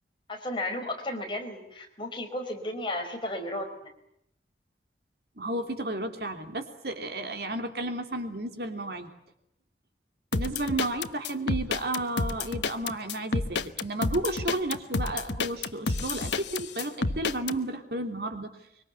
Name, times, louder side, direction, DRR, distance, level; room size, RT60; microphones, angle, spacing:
voice 1, 0.3-3.9, left 1 dB, 30° left, 2 dB, 4.9 m, -34 dB
voice 2, 5.4-9.1 10.3-18.5, right 1 dB, 60° right, 6 dB, 3.2 m, -32 dB
sound 1, 10.3-17.6, left 3 dB, 85° left, 1.2 m, -29 dB
25.0 x 24.0 x 8.3 m, 0.76 s
head